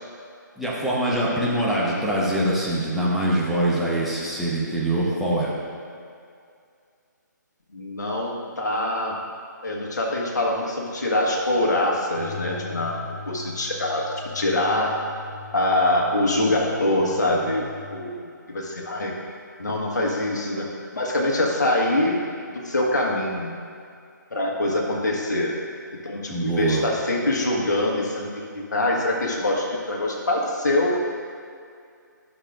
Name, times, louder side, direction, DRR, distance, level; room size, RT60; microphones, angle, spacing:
voice 1, 0.6-5.5 26.3-26.8, right 1 dB, ahead, -8 dB, 0.8 m, -23 dB
voice 2, 7.7-9.2 9.6-14.0 14.3-14.9 15.5-17.6 17.9-19.1 19.6-22.2 22.5-23.5 24.3-25.5 26.0-31.0, left 1 dB, 60° left, -1 dB, 1.5 m, -24 dB
sound 1, 12.1-18.1, left 5 dB, 85° left, 1.1 m, -40 dB
11.5 x 6.4 x 2.5 m, 2.3 s
figure-of-eight pair, 140°, 10 cm